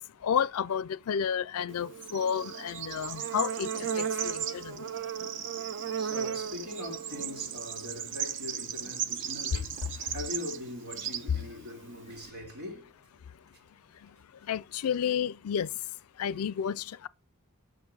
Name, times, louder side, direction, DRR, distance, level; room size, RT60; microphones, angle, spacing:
voice 1, 0.2-4.9 14.5-15.7 16.2-17.1, left 8 dB, 70° left, 0.4 m, -31 dB
Bird / Insect, 1.7-12.3, right 8 dB, 55° right, 0.7 m, -36 dB
voice 2, 6.0-9.7 10.1-12.9 16.2-16.5, left 1 dB, 85° right, 3.2 m, -41 dB
10.5 x 6.4 x 5.5 m
head